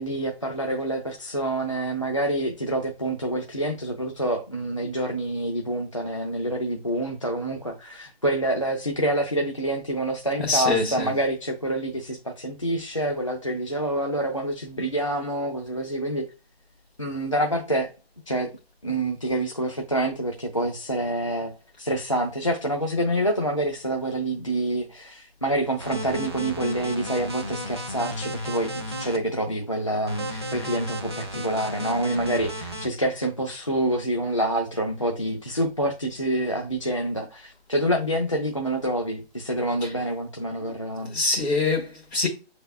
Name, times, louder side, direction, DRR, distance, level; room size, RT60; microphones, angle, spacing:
voice 1, 0.0-16.3 17.0-17.9 18.3-18.5 18.8-41.2, right 1 dB, 35° left, 0.4 m, -27 dB
voice 2, 10.5-11.1 41.1-42.3, left 3 dB, 85° left, 1.4 m, -24 dB
sound 1, 25.8-29.2 30.1-32.9, equal, 25° right, 0.4 m, -33 dB
6.6 x 3.3 x 2.3 m
hypercardioid pair, 170°, 31 cm